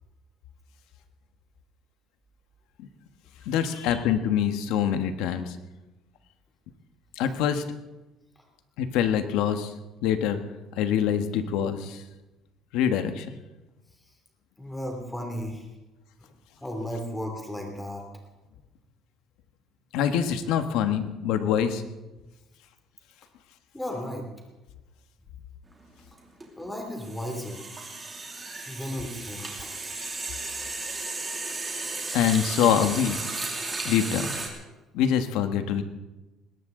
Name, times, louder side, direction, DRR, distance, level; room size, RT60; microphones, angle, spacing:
voice 1, 3.4-5.6 7.1-7.6 8.8-9.7 10.0-10.4 10.7-12.0 12.7-13.4 19.9-21.8 32.1-33.2 33.8-34.3 34.9-35.8, left 9 dB, 80° left, 8 dB, 1.4 m, -25 dB
voice 2, 14.6-15.7 16.2-16.3 16.6-18.0 23.7-24.3 26.6-27.6 28.7-29.9, equal, 5° left, 2 dB, 2.8 m, -35 dB
sound 1, 25.7-25.9 26.2-34.5, right 3 dB, 15° right, 2.7 m, -34 dB
20.5 x 18.0 x 3.9 m, 1.1 s
cardioid pair, 170°, 0 cm